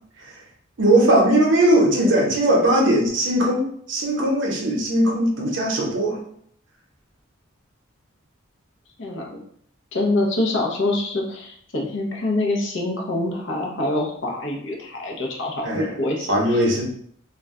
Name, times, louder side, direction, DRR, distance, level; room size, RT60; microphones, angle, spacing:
voice 1, 0.8-6.2 15.6-15.9 16.3-16.8, right 1 dB, 65° right, 0 dB, 0.7 m, -19 dB
voice 2, 9.0-9.4 9.9-16.6, left 2 dB, 65° left, -1 dB, 0.7 m, -25 dB
2.3 x 2.1 x 3.6 m, 0.63 s
head